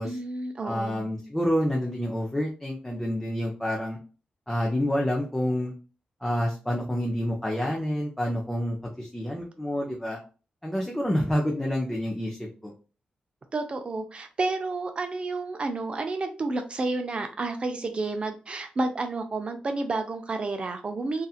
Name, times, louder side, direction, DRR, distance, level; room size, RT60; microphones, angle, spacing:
voice 1, 0.0-1.1 13.5-21.3, right 3 dB, 40° right, 6 dB, 0.4 m, -30 dB
voice 2, 0.6-4.0 4.5-5.7 6.2-10.2 10.6-12.7, equal, 10° left, -2 dB, 0.6 m, -28 dB
2.7 x 2.4 x 2.3 m, 0.36 s
wide cardioid pair, 105°, 3 cm